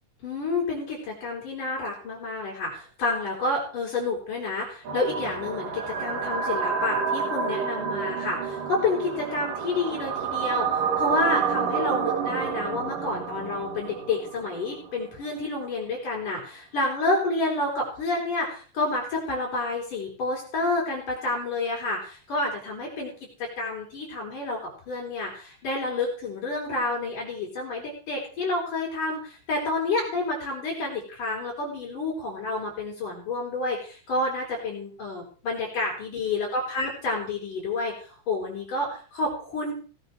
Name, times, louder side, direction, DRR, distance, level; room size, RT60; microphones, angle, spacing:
voice 1, 0.2-23.1 23.4-39.7, left 2 dB, 50° left, -2 dB, 6.5 m, -29 dB
sound 1, 4.8-15.0, right 6 dB, 55° right, 3.6 m, -29 dB
18.5 x 9.1 x 6.4 m, 0.41 s
omnidirectional pair, 4.8 m